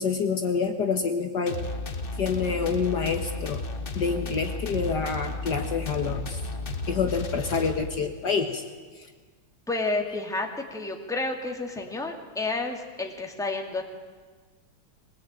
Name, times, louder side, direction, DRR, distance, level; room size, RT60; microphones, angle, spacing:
voice 1, 0.0-1.6 2.2-3.7 3.9-8.6 9.0-9.1, left 5 dB, 55° left, 5 dB, 1.8 m, -27 dB
sound 1, 1.5-8.2, left 3 dB, 30° left, 1.2 m, -34 dB
voice 2, 9.7-13.8, left 2 dB, ahead, 2 dB, 2.2 m, -30 dB
22.5 x 20.5 x 9.0 m, 1.4 s
omnidirectional pair, 2.3 m